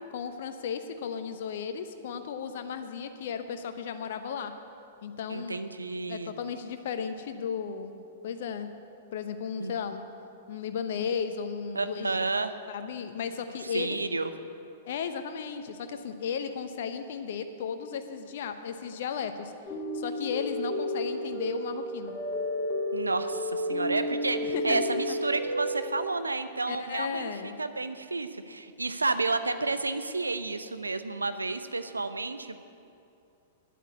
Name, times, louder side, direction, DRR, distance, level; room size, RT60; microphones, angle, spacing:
voice 1, 0.1-4.5 5.0-5.6 6.1-8.7 9.1-10.1 10.5-12.2 12.7-14.0 14.9-19.5 19.9-22.1 24.4-24.8 25.1-25.2 26.7-27.6, left 7 dB, 55° left, 8 dB, 0.8 m, -35 dB
voice 2, 5.3-6.3 9.6-9.8 11.7-12.5 13.6-14.3 22.9-32.6, right 3 dB, 80° right, 10 dB, 0.6 m, -31 dB
sound 1, 19.7-25.8, equal, 30° left, 3.8 m, -31 dB
10.0 x 8.4 x 9.5 m, 2.7 s
figure-of-eight pair, 105°, 0 cm